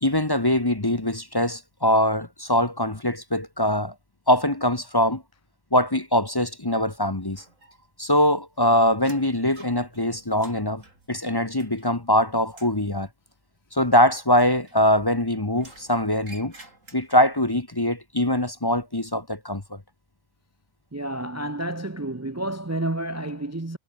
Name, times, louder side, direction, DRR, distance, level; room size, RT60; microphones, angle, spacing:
voice 1, 0.0-3.9 4.3-5.2 5.7-7.4 8.0-10.8 11.1-13.1 13.7-16.5 16.9-19.8, left 1 dB, 20° left, 1.3 m, -22 dB
sound 1, 7.3-8.1 8.4-12.1 12.4-12.9 14.3-15.2 15.5-17.4, right 2 dB, 80° right, 5.9 m, -51 dB
voice 2, 20.9-23.8, right 1 dB, 15° right, 0.9 m, -30 dB
omnidirectional pair, 1.3 m